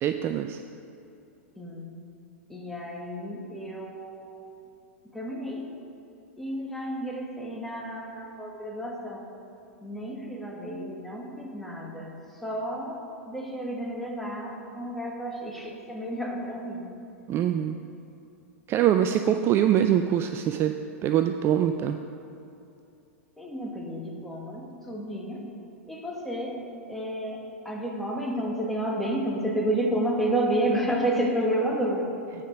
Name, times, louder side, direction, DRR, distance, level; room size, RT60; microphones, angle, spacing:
voice 1, 0.0-0.6 17.3-17.8 18.7-20.7 21.0-22.0, right 10 dB, 30° right, 7 dB, 0.3 m, -23 dB
voice 2, 1.6-1.9 2.5-4.4 5.1-5.7 6.4-9.3 9.8-16.9 23.4-25.5 25.9-32.1, right 1 dB, 5° left, -2 dB, 1.4 m, -31 dB
8.9 x 5.0 x 5.8 m, 2.7 s
hypercardioid pair, 105°, 8 cm